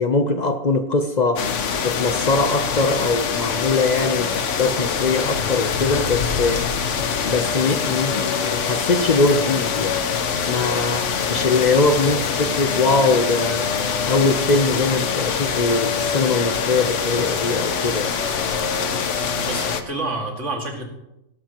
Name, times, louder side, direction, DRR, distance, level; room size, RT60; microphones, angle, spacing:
voice 1, 0.0-1.5 1.8-6.6 7.2-10.0 10.5-13.7 14.1-18.2, left 3 dB, 40° left, 8 dB, 0.8 m, -21 dB
sound 1, 1.4-19.8, left 6 dB, 80° left, 1.3 m, -24 dB
voice 2, 19.5-20.9, right 2 dB, 75° right, 1 dB, 2.4 m, -28 dB
17.5 x 12.5 x 3.0 m, 0.89 s
omnidirectional pair, 1.2 m